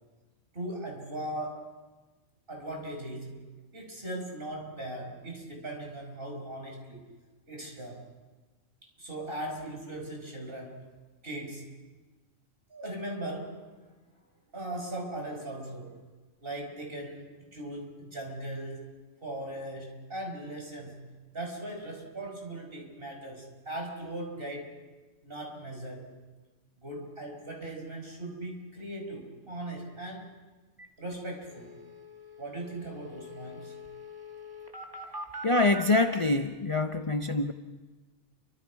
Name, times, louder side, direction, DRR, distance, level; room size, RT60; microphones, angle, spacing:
voice 1, 0.5-1.7 2.5-3.3 3.7-7.0 7.5-8.0 9.0-10.8 11.2-11.6 12.7-13.7 14.5-16.0 16.4-18.8 19.2-21.0 21.3-24.7 25.2-26.1 26.8-30.3 31.0-31.8 32.4-33.7, right 1 dB, 45° right, 1 dB, 5.3 m, -39 dB
sound 1, 30.8-30.9 31.1-31.2 31.5-36.1, equal, 15° right, 2.3 m, -43 dB
voice 2, 35.4-37.5, left 2 dB, 30° left, 7 dB, 0.7 m, -25 dB
29.5 x 25.5 x 4.8 m, 1.3 s
omnidirectional pair, 1.3 m